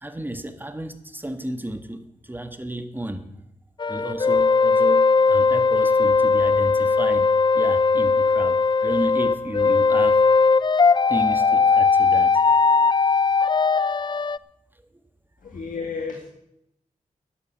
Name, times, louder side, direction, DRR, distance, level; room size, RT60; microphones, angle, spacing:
voice 1, 0.0-3.2 3.9-7.3 7.5-10.2 11.1-12.4, right 1 dB, 15° right, 8 dB, 1.6 m, -32 dB
sound 1, 3.8-14.4, left 4 dB, 35° left, 0.4 m, -19 dB
voice 2, 15.4-16.3, left 5 dB, 75° left, 3 dB, 1.9 m, -32 dB
11.0 x 9.7 x 8.2 m, 0.82 s
cardioid pair, 55°, 14 cm